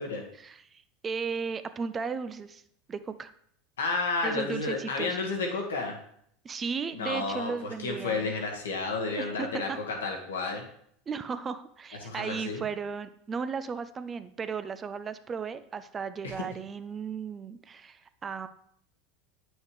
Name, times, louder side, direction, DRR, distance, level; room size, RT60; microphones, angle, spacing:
voice 1, 0.4-2.6 2.9-3.3 4.2-5.2 6.4-8.3 9.2-9.8 11.1-18.5, right 5 dB, 30° right, 12 dB, 0.5 m, -35 dB
voice 2, 3.8-6.0 6.9-10.6 12.0-12.6 16.2-16.3, left 3 dB, 80° left, 2 dB, 1.2 m, -31 dB
8.0 x 6.3 x 3.1 m, 0.68 s
hypercardioid pair, 85°, 0 cm